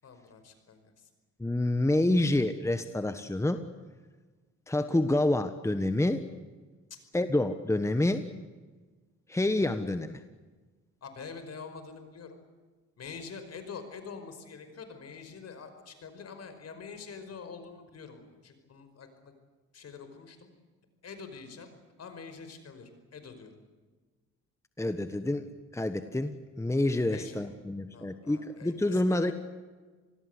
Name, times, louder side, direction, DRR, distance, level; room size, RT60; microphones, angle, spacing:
voice 1, 0.0-1.1 6.9-7.0 11.0-12.4 13.0-19.3 19.7-20.5 21.0-21.7 22.0-23.5 27.1-27.6 27.9-29.3, left 5 dB, 55° left, 9 dB, 5.2 m, -45 dB
voice 2, 1.4-3.6 4.7-6.2 7.1-8.2 9.3-10.2 24.8-29.3, left 1 dB, 10° left, 9 dB, 1.4 m, -28 dB
28.0 x 20.0 x 8.1 m, 1.4 s
cardioid pair, 90°, 30 cm